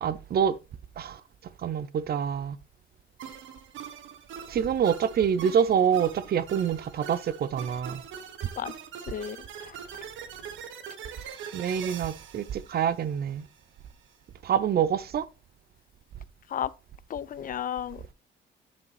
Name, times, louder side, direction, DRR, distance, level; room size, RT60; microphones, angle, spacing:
voice 1, 0.0-0.6 1.0-1.2 1.6-2.6 4.5-8.0 11.5-13.5 14.4-15.3, right 8 dB, 50° right, 0.5 m, -26 dB
sound 1, 3.2-13.6, right 8 dB, 75° right, 1.0 m, -43 dB
voice 2, 9.1-9.8 16.5-16.7 17.1-18.1, left 9 dB, 45° left, 0.4 m, -34 dB
9.7 x 5.2 x 3.2 m
cardioid pair, 90°, 20 cm